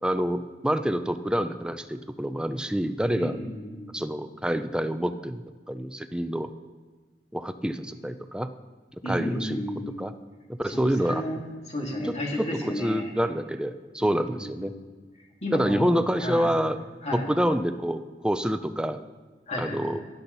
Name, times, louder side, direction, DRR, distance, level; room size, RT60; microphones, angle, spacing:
voice 1, 0.0-3.4 3.9-6.5 7.3-8.5 9.1-9.6 10.0-10.1 10.5-11.2 12.0-14.7 15.5-16.8 17.1-19.0 19.6-20.0, equal, 5° right, 10 dB, 0.5 m, -27 dB
voice 2, 3.2-3.9 9.0-10.0 10.7-11.4 11.7-13.1 14.0-14.9 15.4-15.9 16.1-16.5 17.0-17.3 19.5-20.0, left 1 dB, 40° left, -1 dB, 2.6 m, -33 dB
16.0 x 11.5 x 4.0 m, 1.4 s
head